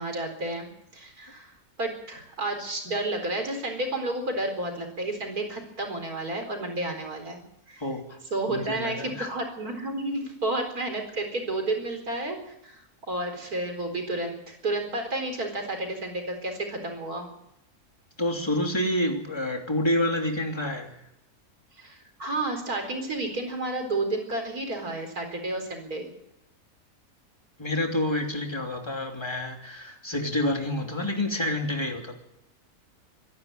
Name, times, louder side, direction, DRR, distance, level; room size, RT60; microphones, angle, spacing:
voice 1, 0.0-1.5 1.8-7.4 7.7-7.8 8.3-12.4 12.6-12.8 13.1-17.3 21.8-26.1, right 2 dB, 70° right, 4 dB, 4.8 m, -31 dB
voice 2, 7.8-8.2 8.5-9.3 18.2-20.9 27.6-32.1, left 1 dB, 15° left, 2 dB, 3.1 m, -28 dB
25.0 x 12.0 x 9.2 m, 0.82 s
omnidirectional pair, 1.7 m